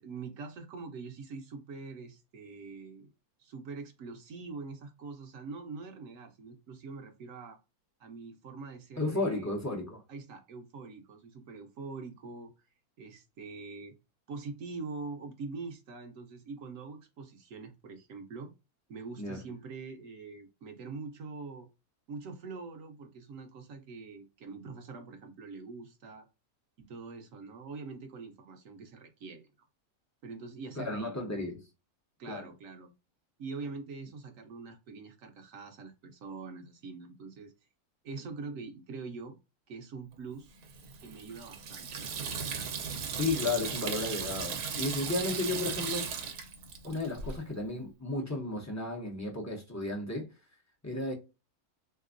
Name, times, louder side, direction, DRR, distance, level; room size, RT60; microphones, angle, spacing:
voice 1, 0.0-3.1 3.4-7.6 8.0-9.5 10.1-12.5 13.0-13.9 14.3-18.5 18.9-21.7 22.1-26.3 26.8-29.4 30.2-31.2 32.2-32.9 33.4-37.5 38.0-39.4 39.7-40.6 41.0-42.4, right 4 dB, 65° right, 1.0 m, -44 dB
voice 2, 9.0-10.0 19.2-19.4 30.8-31.6 32.3-32.4 43.2-46.1 46.8-50.3 50.8-51.1, left 2 dB, 25° left, 0.3 m, -33 dB
Water tap faucet / Sink (filling or washing), 40.6-47.4, right 6 dB, 85° right, 1.2 m, -37 dB
3.4 x 2.9 x 2.4 m
omnidirectional pair, 1.6 m